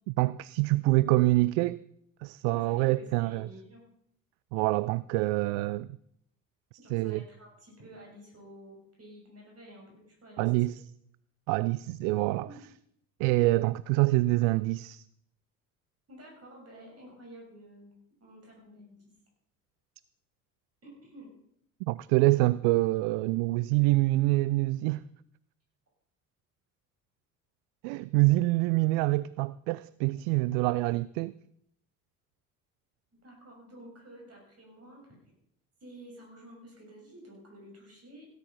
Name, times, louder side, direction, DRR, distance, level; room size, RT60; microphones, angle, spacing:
voice 1, 0.2-1.8 2.2-3.5 4.5-5.9 6.9-7.2 10.4-10.8 11.5-12.5 13.2-15.0 21.9-25.0 27.8-31.3, right 20 dB, 60° right, 0.5 m, -26 dB
voice 2, 2.5-3.8 6.8-10.5 12.4-12.6 16.1-19.0 20.8-21.3 33.2-35.2 35.8-38.2, right 1 dB, 35° right, 6.6 m, -51 dB
16.5 x 9.8 x 5.8 m
figure-of-eight pair, 55°, 44 cm